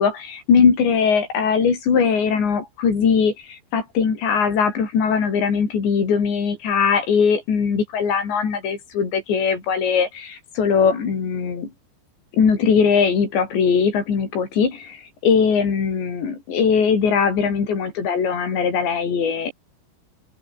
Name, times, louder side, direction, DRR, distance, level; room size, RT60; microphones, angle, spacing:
voice 1, 0.0-11.7 12.3-19.5, left 6 dB, 85° left, 7.7 m, -20 dB
open air
omnidirectional pair, 5.0 m